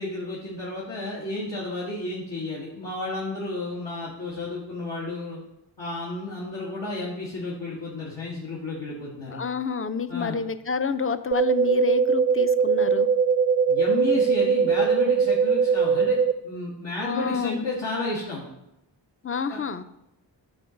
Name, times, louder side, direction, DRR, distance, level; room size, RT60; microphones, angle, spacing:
voice 1, 0.0-5.4 5.8-9.4 10.1-10.4 13.7-16.2 16.4-18.4 19.5-19.6, left 2 dB, 75° left, -7 dB, 2.0 m, -32 dB
voice 2, 9.3-13.1 17.0-17.6 19.2-19.8, left 5 dB, 30° left, 12 dB, 0.5 m, -29 dB
sound 1, 11.3-16.3, right 6 dB, 20° right, 0.4 m, -21 dB
9.6 x 3.9 x 6.3 m, 0.86 s
wide cardioid pair, 55°, 44 cm